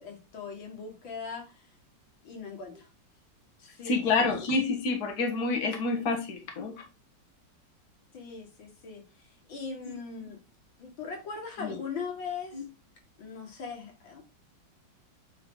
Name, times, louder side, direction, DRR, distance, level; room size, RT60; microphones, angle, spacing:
voice 1, 0.0-1.7 2.2-2.9 3.6-4.3 8.1-9.0 9.5-10.4 10.8-12.6 13.2-14.2, left 5 dB, 85° left, 2.6 m, -40 dB
voice 2, 3.8-6.8 9.8-10.3 11.6-11.8 12.5-12.6, left 3 dB, 55° left, 2.0 m, -29 dB
8.4 x 4.5 x 3.7 m
omnidirectional pair, 2.1 m